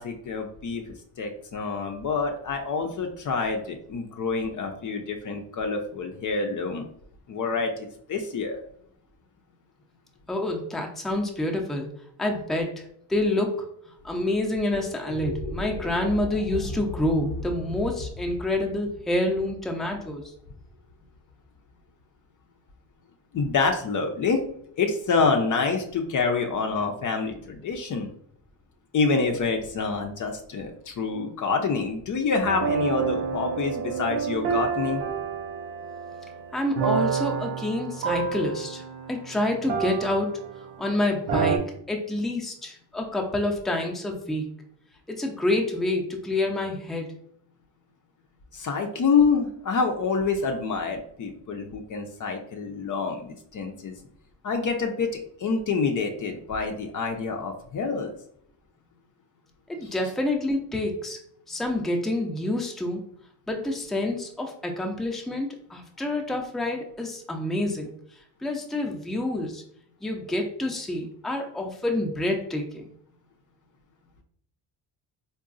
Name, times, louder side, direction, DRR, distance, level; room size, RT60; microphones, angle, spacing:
voice 1, 0.0-6.9 7.3-8.6 23.3-24.4 24.8-28.1 28.9-35.0 48.5-53.9 54.4-58.1, left 4 dB, 45° left, 3 dB, 0.6 m, -27 dB
voice 2, 10.3-11.9 12.2-12.8 13.1-13.7 14.0-20.3 36.5-40.3 40.8-44.5 45.1-47.1 59.7-61.2 61.5-63.0 63.5-67.9 68.4-69.6 70.0-72.9, left 1 dB, ahead, 1 dB, 0.5 m, -28 dB
sound 1, 15.0-21.3, left 2 dB, 80° left, 0.7 m, -37 dB
sound 2, 32.4-40.9 41.3-41.6, right 6 dB, 80° right, 0.6 m, -29 dB
3.7 x 2.3 x 2.5 m, 0.67 s
supercardioid pair, 65°, 45 cm